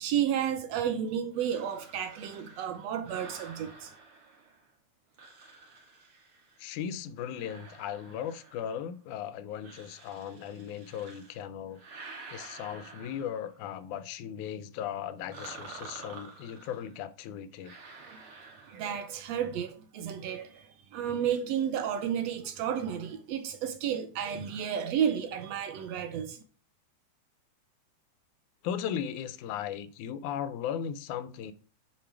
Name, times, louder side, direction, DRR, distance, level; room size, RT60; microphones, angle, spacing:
voice 1, 0.0-3.9 18.1-18.2 18.7-26.4, right 9 dB, 70° right, 1.7 m, -32 dB
sound 1, 1.3-4.7 5.1-6.7 7.3-8.9 9.5-11.4 11.7-13.6 15.3-16.9 17.6-19.2, right 3 dB, 50° right, 2.2 m, -49 dB
voice 2, 6.6-11.8 12.3-17.7 28.6-31.5, left 9 dB, 90° left, 2.2 m, -37 dB
8.7 x 5.5 x 4.6 m
omnidirectional pair, 3.4 m